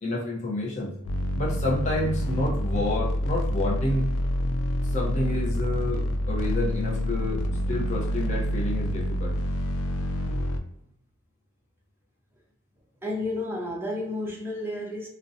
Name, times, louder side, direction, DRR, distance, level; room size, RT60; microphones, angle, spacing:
voice 1, 0.0-1.0 1.3-4.1 4.9-9.3, left 1 dB, 35° left, -3 dB, 0.6 m, -29 dB
sound 1, 1.0-10.6, equal, 75° left, 0.3 m, -27 dB
voice 2, 13.0-15.1, left 1 dB, 10° right, -2 dB, 0.5 m, -31 dB
2.6 x 2.1 x 2.5 m, 0.74 s
head